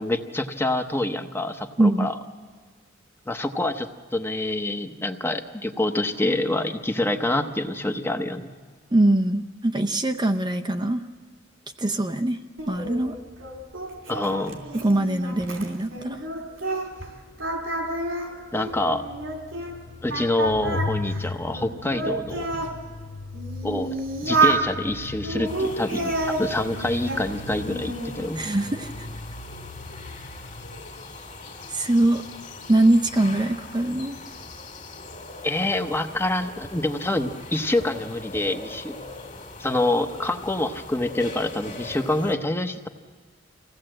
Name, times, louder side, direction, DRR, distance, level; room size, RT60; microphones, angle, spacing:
voice 1, 0.0-2.2 3.3-8.5 14.1-14.7 18.5-19.0 20.0-22.5 23.6-24.0 24.2-28.4 35.4-39.0 39.6-42.9, left 1 dB, 10° left, 7 dB, 0.9 m, -26 dB
voice 2, 1.8-2.1 8.9-11.1 11.8-12.4 12.7-13.2 14.7-16.2 28.4-29.1 31.7-32.2 32.7-34.2, right 1 dB, 20° right, 6 dB, 0.6 m, -22 dB
Singing, 12.6-17.1 17.4-19.7 20.1-22.7 23.3-24.7 25.2-27.3 27.6-28.2, right 3 dB, 90° right, 3.0 m, -29 dB
sound 1, 18.7-30.8, left 3 dB, 75° left, 1.0 m, -38 dB
sound 2, 25.4-42.4, left 2 dB, 40° left, 2.1 m, -41 dB
25.5 x 16.5 x 7.7 m, 1.5 s
head